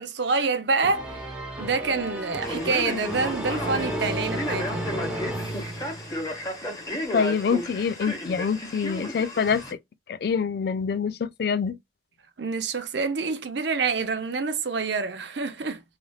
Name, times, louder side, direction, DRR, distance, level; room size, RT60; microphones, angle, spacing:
voice 1, 0.0-4.9 12.4-15.8, right 4 dB, 70° right, 0.7 m, -27 dB
sound 1, 0.8-6.5, right 1 dB, 5° right, 0.9 m, -33 dB
Male speech man speaking, 2.4-9.7, equal, 20° left, 1.0 m, -34 dB
voice 2, 7.1-9.6 10.1-11.8, left 6 dB, 55° left, 0.3 m, -25 dB
3.2 x 2.4 x 2.3 m
head